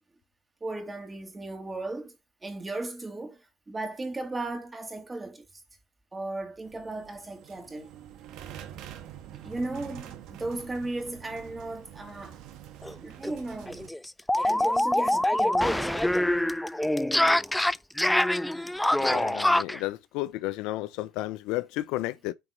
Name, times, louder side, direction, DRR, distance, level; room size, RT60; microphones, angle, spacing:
voice 1, 0.6-2.2 2.4-3.4 3.7-5.4 6.1-7.9 9.4-12.4 13.0-13.9 14.4-16.4, right 2 dB, 15° right, 2.6 m, -36 dB
sound 1, 6.6-13.9, right 10 dB, 60° right, 1.4 m, -46 dB
sound 2, 12.8-12.9 13.2-13.3 13.7-19.8, left 1 dB, 5° left, 0.4 m, -25 dB
voice 2, 19.0-22.3, left 16 dB, 65° left, 0.6 m, -32 dB
9.1 x 4.2 x 5.1 m
hypercardioid pair, 75°, 0 cm